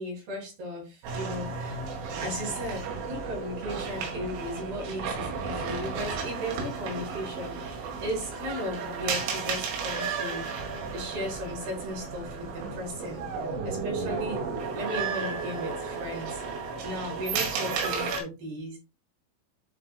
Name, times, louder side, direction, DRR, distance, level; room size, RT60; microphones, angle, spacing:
voice 1, 0.0-1.8 2.2-10.4 10.9-13.3 13.6-16.4 16.8-18.8, equal, 50° right, -2 dB, 5.8 m, -36 dB
sound 1, 1.0-18.2, right 5 dB, 80° right, 4.6 m, -33 dB
11.5 x 4.5 x 2.5 m, 0.26 s
omnidirectional pair, 5.9 m